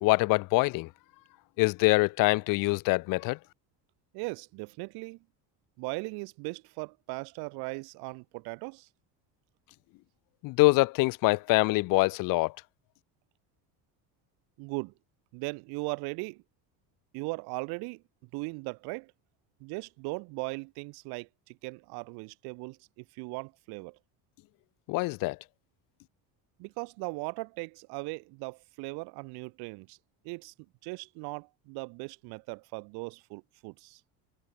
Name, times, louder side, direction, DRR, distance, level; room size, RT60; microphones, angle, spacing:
voice 1, 0.0-0.9 1.6-3.4 10.4-12.5 24.9-25.4, left 23 dB, 60° left, 0.6 m, -24 dB
voice 2, 4.1-5.2 5.8-8.9 14.6-14.9 15.3-16.4 17.1-18.0 18.3-19.1 19.6-24.0 26.6-30.0 30.2-30.5 30.8-34.0, right 29 dB, 90° right, 1.6 m, -38 dB
cardioid pair, 155°, 37 cm